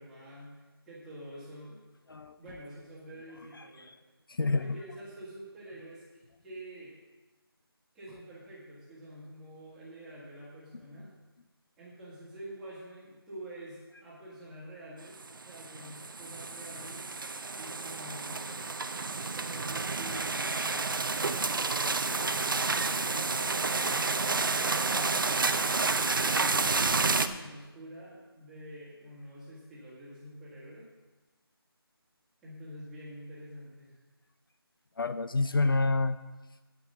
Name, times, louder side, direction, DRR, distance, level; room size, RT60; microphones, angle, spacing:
voice 1, 0.0-1.8 2.4-4.0 4.4-6.9 7.9-11.1 11.8-17.2 17.5-18.7 19.3-25.6 26.2-30.9 32.4-33.9, right 1 dB, 5° right, -10 dB, 1.6 m, -47 dB
voice 2, 4.3-4.8 35.0-36.2, left 3 dB, 60° left, 11 dB, 0.5 m, -28 dB
sound 1, 15.2-27.3, right 4 dB, 55° right, 0.6 m, -30 dB
9.5 x 8.9 x 5.5 m, 1.1 s
figure-of-eight pair, 170°, 13 cm